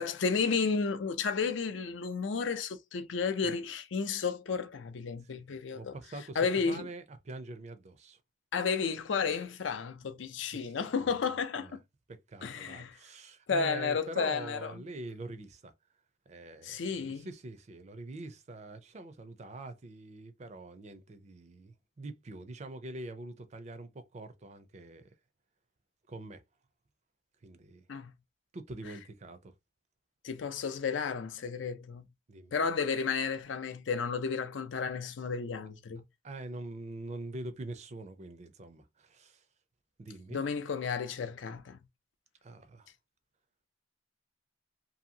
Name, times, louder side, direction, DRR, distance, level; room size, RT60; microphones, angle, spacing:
voice 1, 0.0-6.0 6.4-6.9 8.5-11.8 12.4-13.0 13.5-14.8 16.6-17.3 27.9-28.1 30.2-32.0 32.5-36.0 40.3-41.8, left 5 dB, 75° left, 0.5 m, -32 dB
voice 2, 5.7-8.2 10.5-11.1 11.6-11.8 12.1-15.7 16.3-25.1 26.1-26.4 27.4-27.9 28.5-29.5 32.3-32.5 36.2-39.4 40.0-40.4 42.4-42.9, right 2 dB, 35° right, 0.4 m, -44 dB
2.7 x 2.7 x 2.7 m
head